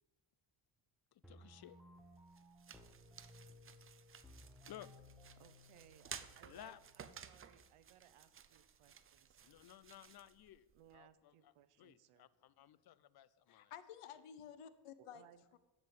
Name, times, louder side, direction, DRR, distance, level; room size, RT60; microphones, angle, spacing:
voice 1, 1.1-1.8 4.7-4.9 6.5-6.8 9.4-13.7, left 12 dB, 50° left, 18 dB, 0.5 m, -57 dB
sound 1, 1.2-7.2, left 1 dB, ahead, 1.0 m, -61 dB
sound 2, 2.0-11.0, right 7 dB, 30° right, 0.5 m, -56 dB
voice 2, 5.4-9.7 10.7-12.3 15.0-15.4, right 10 dB, 90° right, 14 dB, 0.9 m, -65 dB
voice 3, 13.5-15.2 15.5-15.6, left 9 dB, 90° left, 13 dB, 1.0 m, -53 dB
11.0 x 7.5 x 7.8 m, 1.1 s
wide cardioid pair, 175°, 49 cm